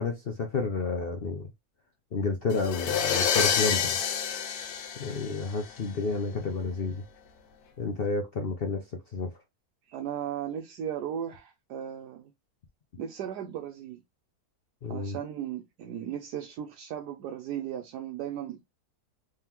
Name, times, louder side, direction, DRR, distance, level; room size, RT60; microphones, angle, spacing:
voice 1, 0.0-1.5 2.1-4.0 5.0-7.0 7.8-8.8 9.1-9.3 14.8-15.2, left 4 dB, 55° left, 0.6 m, -30 dB
sound 1, 2.5-5.8, left 7 dB, 70° left, 1.2 m, -28 dB
voice 2, 9.9-12.3 13.0-14.0 14.9-18.7, right 9 dB, 80° right, 1.2 m, -36 dB
3.6 x 3.4 x 2.9 m
omnidirectional pair, 1.7 m